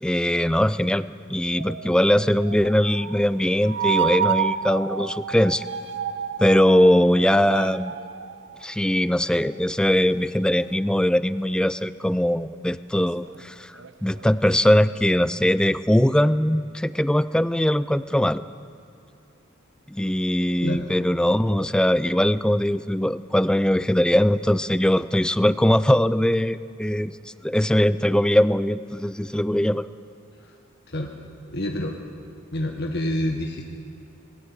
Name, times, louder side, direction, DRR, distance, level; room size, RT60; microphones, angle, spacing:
voice 1, 0.0-1.0 1.3-5.6 6.4-7.9 8.6-13.7 14.0-18.4 19.9-27.1 27.4-29.9, left 1 dB, 5° left, 15 dB, 0.4 m, -21 dB
sound 1, 1.6-9.7 10.6-10.7 13.2-13.4 13.8-15.0, right 8 dB, 60° right, 0.7 m, -30 dB
voice 2, 31.5-31.9 32.5-33.6, left 1 dB, 55° left, 2 dB, 1.5 m, -27 dB
20.0 x 16.5 x 8.9 m, 2.6 s
head